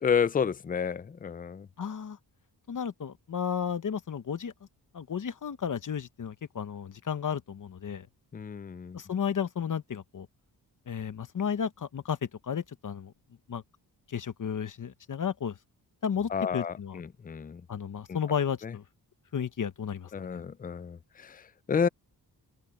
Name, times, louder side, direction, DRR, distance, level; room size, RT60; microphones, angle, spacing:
voice 1, 0.0-1.7 8.3-9.0 16.3-17.6 18.6-18.7 20.1-21.9, left 6 dB, 25° left, 0.4 m, -30 dB
voice 2, 1.8-2.2 2.7-4.5 4.9-8.1 8.9-10.3 10.9-13.1 13.5-13.6 14.1-15.6 16.0-17.0 17.7-18.8 19.3-20.4, left 7 dB, 50° left, 1.1 m, -33 dB
open air
wide cardioid pair, 135°, 39 cm